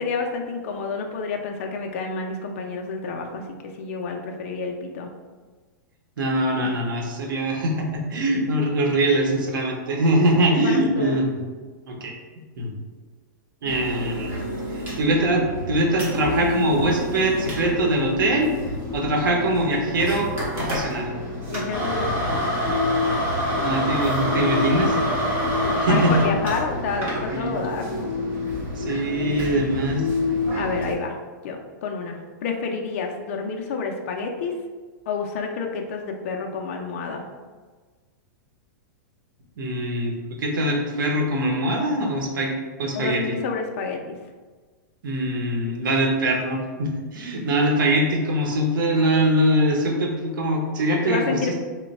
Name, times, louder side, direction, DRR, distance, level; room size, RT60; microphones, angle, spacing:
voice 1, 0.0-3.4 3.8-5.1 6.5-6.7 10.6-11.2 21.5-22.5 25.6-28.1 30.5-31.2 31.4-34.5 35.1-37.2 42.9-44.2 51.0-51.5, left 4 dB, 40° left, 2 dB, 0.4 m, -29 dB
voice 2, 6.2-11.4 11.9-12.1 12.6-12.7 13.6-14.3 14.7-18.5 18.9-21.1 23.6-25.0 25.5-26.2 27.3-27.6 28.6-30.1 39.6-43.2 45.0-51.5, right 1 dB, 85° right, 1 dB, 0.9 m, -23 dB
sound 1, 13.6-30.9, left 1 dB, 20° right, 0.8 m, -27 dB
3.1 x 2.2 x 4.0 m, 1.4 s
supercardioid pair, 170°, 11 cm